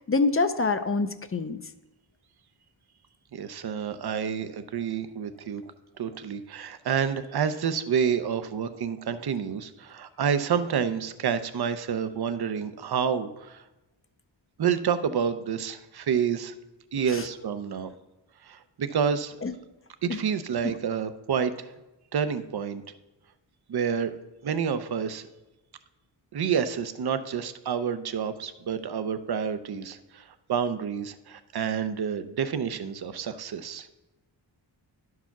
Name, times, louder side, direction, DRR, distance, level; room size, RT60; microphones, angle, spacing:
voice 1, 0.0-1.6 17.1-17.3 19.4-19.6 20.1-20.2 20.6-20.8, left 3 dB, 30° left, 9 dB, 0.5 m, -26 dB
voice 2, 3.3-5.6 6.0-13.6 14.6-16.5 16.9-17.9 18.4-19.4 20.0-21.7 22.1-22.8 23.7-24.2 24.4-25.3 26.3-33.9, right 7 dB, 55° right, 12 dB, 0.6 m, -29 dB
11.5 x 4.8 x 5.9 m, 1.0 s
wide cardioid pair, 125°, 46 cm